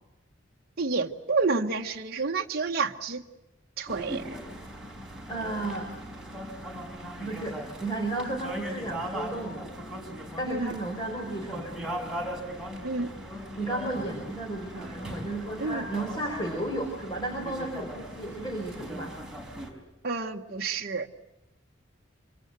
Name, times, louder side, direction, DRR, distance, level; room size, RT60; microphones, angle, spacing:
voice 1, 0.8-3.2 3.8-4.4 10.5-10.7 12.8-13.1 15.6-15.9 20.0-21.1, right 4 dB, 50° right, 1 dB, 1.1 m, -29 dB
sound 1, 3.9-19.7, equal, ahead, 4.8 m, -39 dB
voice 2, 5.3-5.9 7.2-9.7 10.4-12.1 13.6-19.1, right 2 dB, 20° left, 1 dB, 4.7 m, -33 dB
26.0 x 25.0 x 7.9 m, 0.96 s
head